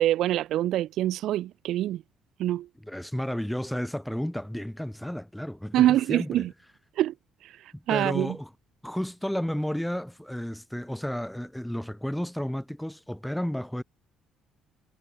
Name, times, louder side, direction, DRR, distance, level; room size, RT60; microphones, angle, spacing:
voice 1, 0.0-2.0 2.4-2.7 5.7-6.5 7.0-7.1 7.9-8.4, right 13 dB, 75° right, 0.5 m, -24 dB
voice 2, 2.9-6.5 7.7-8.5 8.8-13.8, equal, 5° left, 2.8 m, -32 dB
cardioid pair, 110°, 0 cm